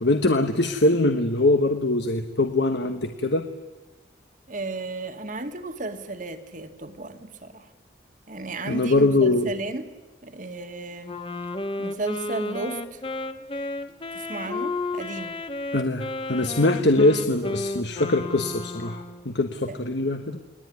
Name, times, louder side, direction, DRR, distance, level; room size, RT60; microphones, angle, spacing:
voice 1, 0.0-3.5 8.7-9.5 15.7-20.4, left 2 dB, 65° left, 7 dB, 1.3 m, -22 dB
voice 2, 4.5-7.7 8.3-9.9 10.2-11.2 11.8-13.0 14.1-15.4 19.7-19.8, right 2 dB, 45° right, 7 dB, 1.9 m, -34 dB
Wind instrument woodwind instrument, 11.0-19.3, left 2 dB, 30° left, 1.2 m, -33 dB
29.5 x 20.5 x 9.6 m, 1.2 s
head